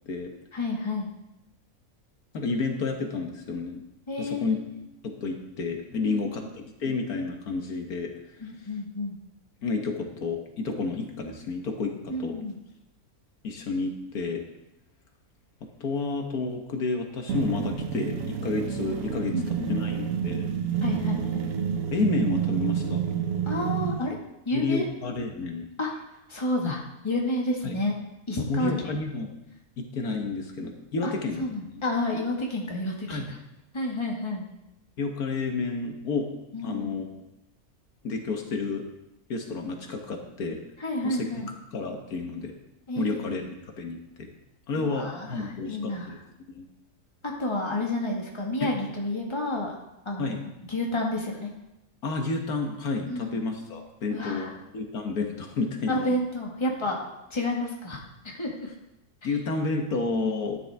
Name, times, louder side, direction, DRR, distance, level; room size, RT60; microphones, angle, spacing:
voice 1, 0.5-1.1 4.1-4.8 6.0-6.5 8.4-9.2 12.1-12.6 19.3-19.8 20.8-21.5 23.4-24.2 24.4-24.9 25.8-25.9 26.3-28.0 28.3-29.0 31.0-31.1 31.4-33.4 33.7-34.5 36.5-37.0 40.8-41.5 42.9-43.4 44.8-46.2 47.2-49.8 50.0-50.4 50.7-51.5 53.1-53.4 54.1-54.5 55.9-57.0 57.3-58.0 58.2-58.7, left 1 dB, 20° left, -1 dB, 1.7 m, -30 dB
voice 2, 2.3-3.8 4.2-4.6 5.0-8.5 9.6-12.4 13.4-14.4 15.8-19.3 19.7-20.5 21.9-23.0 24.5-25.7 27.6-27.8 28.5-29.3 29.8-31.7 33.1-33.2 35.0-36.3 36.6-37.0 38.0-38.8 39.3-40.6 41.0-42.5 43.0-43.4 43.8-44.3 44.7-46.2 46.5-46.7 48.6-48.7 50.2-50.4 52.0-56.1 59.2-60.6, left 4 dB, 75° left, 3 dB, 1.7 m, -30 dB
sound 1, 17.3-24.1, right 8 dB, 70° right, 1.3 m, -29 dB
12.5 x 10.5 x 3.5 m, 0.90 s
omnidirectional pair, 1.6 m